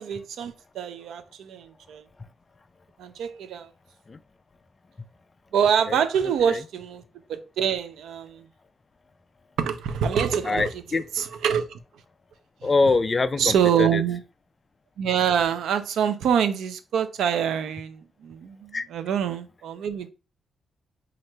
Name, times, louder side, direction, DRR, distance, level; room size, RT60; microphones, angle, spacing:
voice 1, 0.0-2.0 3.0-3.7 5.5-7.0 7.3-8.5 9.6-11.8 13.4-14.2 15.0-20.1, right 8 dB, 90° right, 0.5 m, -25 dB
voice 2, 10.4-11.0 12.6-14.0 18.7-18.9, left 3 dB, 30° left, 0.3 m, -24 dB
3.0 x 2.5 x 4.4 m
cardioid pair, 125°, 0 cm